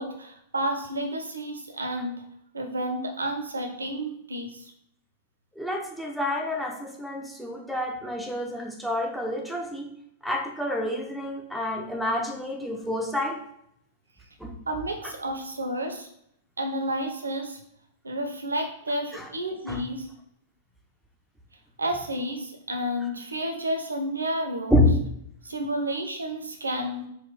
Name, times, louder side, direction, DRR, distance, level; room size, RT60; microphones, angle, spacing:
voice 1, 0.0-2.2 2.5-4.6 14.7-16.1 16.6-17.6 18.0-20.1 21.8-24.8 25.4-27.1, right 1 dB, 80° right, 4 dB, 0.7 m, -31 dB
voice 2, 5.6-9.9 10.2-13.4 14.4-14.5 19.1-19.2 19.7-19.8 24.7-24.9, left 1 dB, ahead, 0 dB, 0.8 m, -28 dB
4.3 x 2.4 x 4.0 m, 0.73 s
figure-of-eight pair, 100°, 0 cm